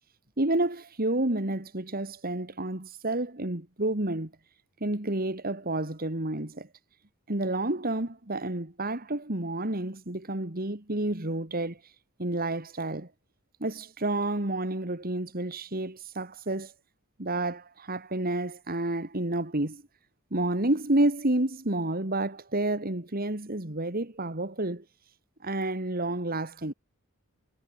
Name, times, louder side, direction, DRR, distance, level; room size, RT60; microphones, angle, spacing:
voice 1, 0.4-4.3 4.8-6.7 7.3-11.9 12.2-13.1 13.6-16.7 17.2-19.8 20.3-24.8 25.4-26.7, right 2 dB, 40° right, 2.5 m, -30 dB
head